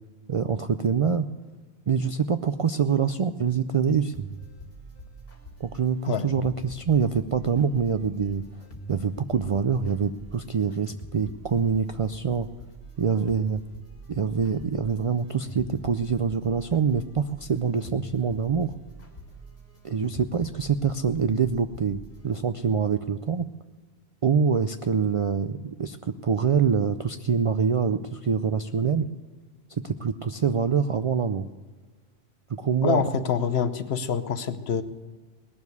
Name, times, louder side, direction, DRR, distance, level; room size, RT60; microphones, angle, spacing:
voice 1, 0.3-1.3 1.9-4.3 5.6-8.4 8.9-12.5 13.0-13.6 14.1-18.7 19.8-23.5 24.2-29.1 29.7-31.5 32.5-33.1, right 6 dB, 55° right, 9 dB, 0.4 m, -25 dB
sound 1, 4.1-22.4, right 2 dB, 60° left, 2.4 m, -45 dB
voice 2, 32.8-34.8, left 7 dB, 75° left, 11 dB, 1.1 m, -26 dB
19.5 x 7.2 x 8.0 m, 1.4 s
omnidirectional pair, 1.1 m